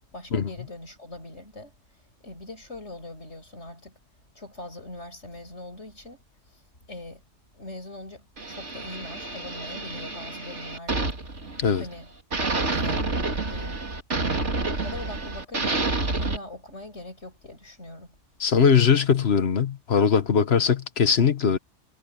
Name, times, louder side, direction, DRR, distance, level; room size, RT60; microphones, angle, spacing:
voice 1, 0.1-1.7 2.2-4.0 4.4-6.2 6.5-6.6 6.9-7.2 7.5-11.2 11.8-12.1 12.6-13.2 13.5-13.8 14.3-15.9 16.2-18.2, left 2 dB, 80° left, 7.0 m, -41 dB
sound 1, 8.4-12.0 12.3-16.4, right 3 dB, 90° right, 3.1 m, -29 dB
voice 2, 18.4-21.6, left 6 dB, 65° left, 1.4 m, -20 dB
omnidirectional pair, 1.2 m